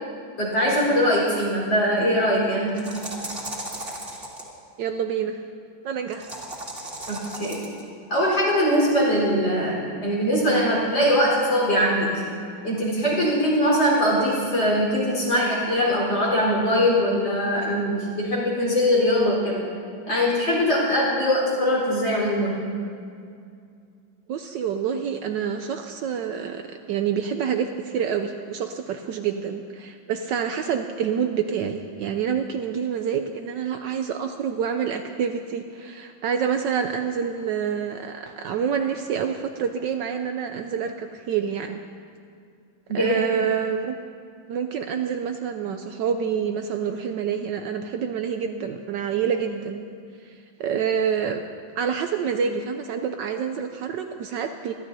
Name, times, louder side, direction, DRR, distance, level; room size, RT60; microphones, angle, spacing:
voice 1, 0.4-2.7 7.1-7.6 8.1-12.2 12.6-19.7 20.1-22.6 42.9-43.2, equal, 60° left, -6 dB, 4.9 m, -22 dB
sound 1, 2.7-4.5 6.1-7.8, right 1 dB, 30° right, 2.3 m, -35 dB
voice 2, 4.8-5.4 5.8-6.3 24.3-41.8 42.9-44.0 44.5-49.9 50.2-51.4 51.8-54.7, right 7 dB, 75° right, 6 dB, 1.1 m, -27 dB
26.0 x 12.0 x 2.7 m, 2.3 s
omnidirectional pair, 2.3 m